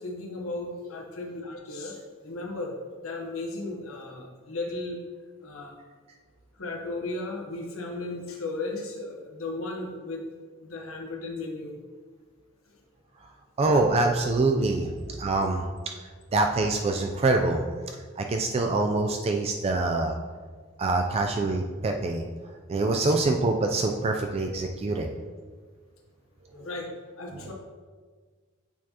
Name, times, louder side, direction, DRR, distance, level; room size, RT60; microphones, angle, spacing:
voice 1, 0.0-2.7 3.0-5.0 5.4-5.7 6.6-10.2 10.6-11.7 26.5-26.9 27.2-27.5, left 2 dB, 80° left, 0 dB, 1.1 m, -35 dB
voice 2, 13.6-14.9 15.2-15.7 16.3-17.6 18.2-20.2 20.8-22.2 22.7-25.1 27.3-27.5, right 2 dB, 30° right, 3 dB, 0.3 m, -25 dB
8.3 x 4.6 x 2.9 m, 1.5 s
head